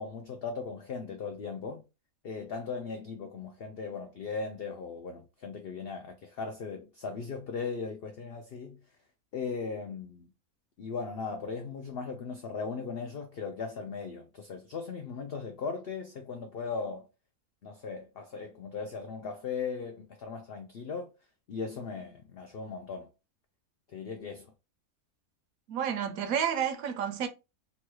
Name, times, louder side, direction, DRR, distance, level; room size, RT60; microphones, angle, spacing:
voice 1, 0.0-1.8 2.2-8.8 9.3-10.3 10.8-17.1 17.6-21.1 21.5-23.1 23.9-24.5, left 5 dB, 75° left, 0.5 m, -38 dB
voice 2, 25.7-27.3, right 8 dB, 75° right, 1.0 m, -30 dB
3.0 x 2.2 x 3.0 m
omnidirectional pair, 1.6 m